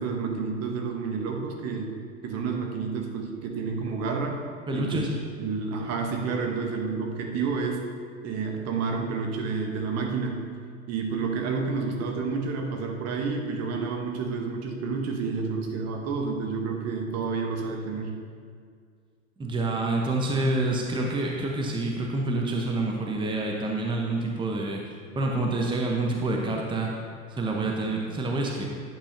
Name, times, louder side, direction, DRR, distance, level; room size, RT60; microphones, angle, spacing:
voice 1, 0.0-2.0 2.2-4.4 4.7-5.1 5.4-7.9 8.2-10.5 10.9-18.2, right 4 dB, 40° right, 2 dB, 1.2 m, -30 dB
voice 2, 4.7-5.1 19.4-24.8 25.2-26.9 27.4-28.6, right 2 dB, 10° right, 0 dB, 1.0 m, -27 dB
10.5 x 8.5 x 2.8 m, 2.1 s
figure-of-eight pair, 80°, 40 cm